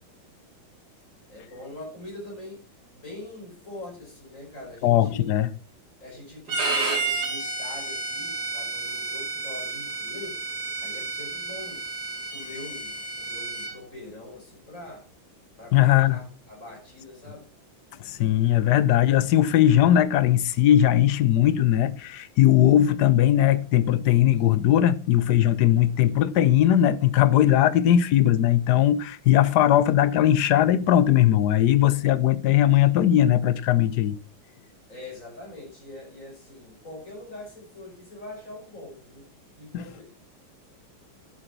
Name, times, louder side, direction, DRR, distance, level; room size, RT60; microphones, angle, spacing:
voice 1, 1.3-2.6 2.9-5.3 6.0-10.4 10.8-11.9 12.3-15.1 15.6-17.5 34.9-39.3 39.6-40.0, left 2 dB, 35° left, 5.8 m, -43 dB
voice 2, 4.8-5.5 15.7-16.2 18.0-34.2 39.7-39.8, left 12 dB, 65° left, 1.1 m, -19 dB
Bowed string instrument, 6.5-13.7, right 3 dB, 55° right, 2.8 m, -31 dB
10.0 x 8.0 x 5.9 m
omnidirectional pair, 2.2 m